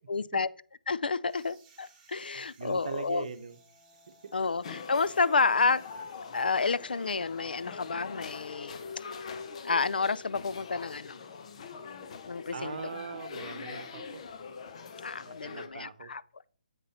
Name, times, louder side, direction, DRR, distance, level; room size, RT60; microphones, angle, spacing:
voice 1, 0.1-0.5 0.9-3.2 4.3-5.8 6.3-8.8 9.6-11.2 12.3-12.7 15.0-16.2, left 4 dB, 85° left, 0.4 m, -30 dB
sound 1, 1.3-8.5, right 6 dB, 20° right, 1.9 m, -64 dB
voice 2, 2.3-3.6 4.1-4.3 12.5-14.2 15.3-16.1, right 6 dB, 55° right, 0.9 m, -41 dB
sound 2, 2.9-7.2, left 3 dB, 15° left, 1.0 m, -59 dB
Gilroy Diner Ambience During Brunch, 4.6-15.7, left 5 dB, 45° left, 0.9 m, -43 dB
8.1 x 5.5 x 4.2 m
hypercardioid pair, 160°, 5 cm